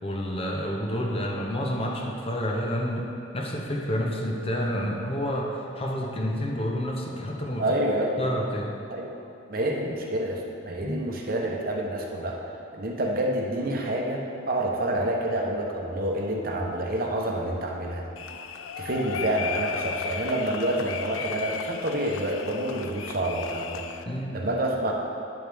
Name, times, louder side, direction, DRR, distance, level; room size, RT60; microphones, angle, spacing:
voice 1, 0.0-7.7 8.2-8.7 10.8-11.1 24.1-24.5, equal, 30° left, 0 dB, 0.8 m, -29 dB
voice 2, 7.6-8.4 8.9-9.1 9.5-12.4 12.7-18.0 18.8-24.9, right 1 dB, 45° right, 0 dB, 0.9 m, -28 dB
sound 1, 18.2-24.0, left 6 dB, 80° left, 0.4 m, -35 dB
9.9 x 7.4 x 3.5 m, 2.8 s
head